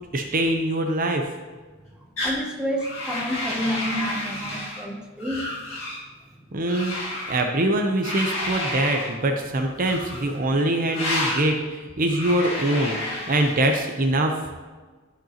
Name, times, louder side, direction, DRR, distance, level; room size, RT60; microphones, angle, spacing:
voice 1, 0.1-1.3 6.5-7.0 7.3-13.0 13.3-14.3, right 1 dB, 40° right, 3 dB, 0.7 m, -23 dB
sound 1, 2.2-2.4 2.8-4.8 5.2-6.0 6.7-7.4 8.0-9.1 9.8-10.4 10.9-11.5 12.1-13.8, left 1 dB, 70° left, 1.9 m, -30 dB
voice 2, 2.2-5.5 9.6-9.7, equal, 5° right, 0 dB, 0.8 m, -29 dB
12.0 x 5.1 x 2.9 m, 1.4 s
head